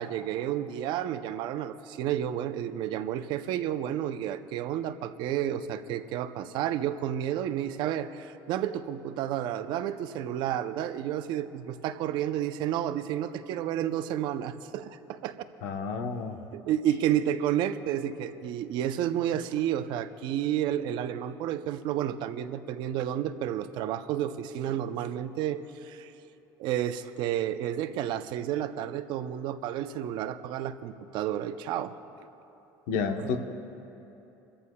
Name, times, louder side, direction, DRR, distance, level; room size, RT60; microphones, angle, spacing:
voice 1, 0.0-15.4 16.5-26.1 26.6-32.0 33.2-33.4, right 11 dB, 65° right, 11 dB, 0.6 m, -31 dB
voice 2, 15.6-16.4 32.9-33.4, left 5 dB, 90° left, 5 dB, 1.0 m, -30 dB
27.0 x 14.0 x 2.3 m, 3.0 s
cardioid pair, 140°, 8 cm